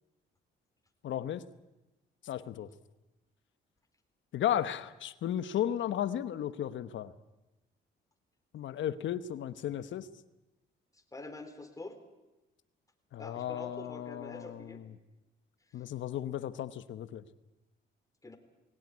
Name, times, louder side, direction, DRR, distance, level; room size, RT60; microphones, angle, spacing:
voice 1, 1.0-1.4 2.2-2.7 4.3-7.1 8.5-10.1 13.1-14.9 15.7-17.2, left 11 dB, 70° left, 14 dB, 1.2 m, -34 dB
voice 2, 11.1-12.0 13.2-14.8 18.2-18.4, left 2 dB, 15° left, 6 dB, 3.6 m, -45 dB
20.5 x 17.0 x 9.7 m, 1.0 s
cardioid pair, 90°, 20 cm